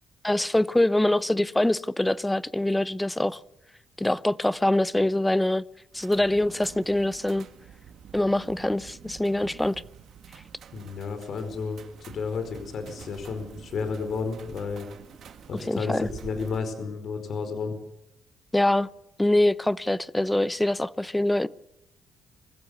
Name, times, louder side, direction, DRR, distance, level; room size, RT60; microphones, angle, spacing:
voice 1, 0.2-3.4 4.0-5.6 5.9-7.5 8.1-9.8 15.7-16.1 18.5-18.9 19.2-21.5, left 1 dB, 10° left, 0.8 m, -24 dB
sound 1, 5.9-16.6, right 8 dB, 65° right, 2.1 m, -47 dB
voice 2, 10.7-14.9 15.5-17.8, left 5 dB, 60° left, 4.8 m, -32 dB
25.5 x 15.0 x 7.0 m
cardioid pair, 90°, 0 cm